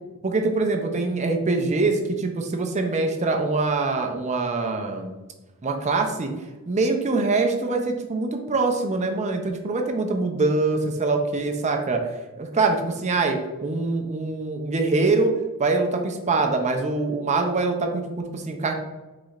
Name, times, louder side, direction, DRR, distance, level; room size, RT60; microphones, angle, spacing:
voice 1, 0.2-5.1 5.6-6.3 6.7-12.0 12.4-15.3 15.6-18.7, right 3 dB, 30° right, 4 dB, 0.5 m, -24 dB
4.8 x 4.0 x 2.4 m, 1.1 s
head